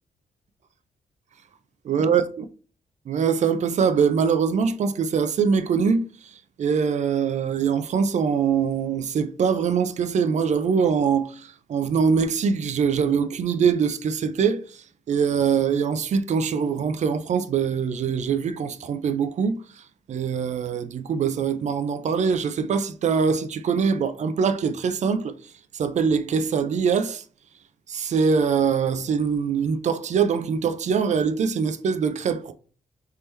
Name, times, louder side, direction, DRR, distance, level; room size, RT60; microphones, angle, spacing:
voice 1, 1.8-2.4 3.1-6.0 6.6-14.6 15.1-19.6 20.1-25.3 25.7-27.2 27.9-32.5, right 6 dB, 55° right, 0.5 m, -23 dB
3.6 x 2.8 x 3.2 m
cardioid pair, 100°, 15 cm